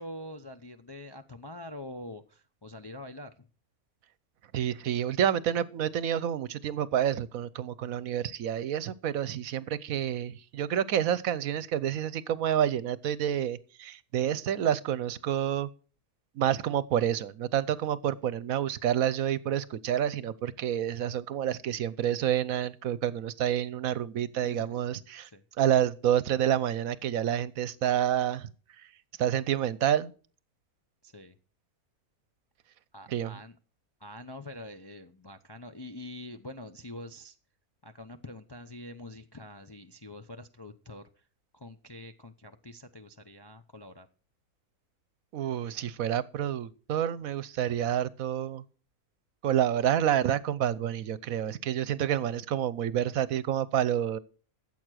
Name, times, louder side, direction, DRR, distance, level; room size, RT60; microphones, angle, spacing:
voice 1, 0.0-3.5 24.4-24.8 25.3-25.4 31.0-31.4 32.9-33.6 34.0-37.4 37.8-41.3 41.5-44.1, left 1 dB, 30° left, 0.4 m, -45 dB
voice 2, 4.5-15.7 16.4-25.3 25.6-28.5 29.2-30.1 33.1-33.3 45.3-48.6 49.4-54.2, right 10 dB, 70° right, 1.1 m, -28 dB
13.5 x 7.9 x 6.3 m
omnidirectional pair, 1.6 m